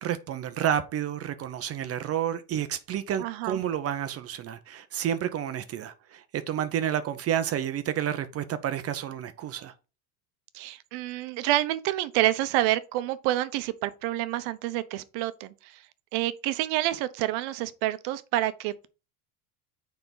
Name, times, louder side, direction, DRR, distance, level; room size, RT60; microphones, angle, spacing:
voice 1, 0.0-9.7, right 10 dB, 35° right, 0.7 m, -30 dB
voice 2, 3.2-3.6 10.5-15.8 16.1-18.9, right 15 dB, 70° right, 1.0 m, -28 dB
7.0 x 5.2 x 4.0 m
supercardioid pair, 125°, 41 cm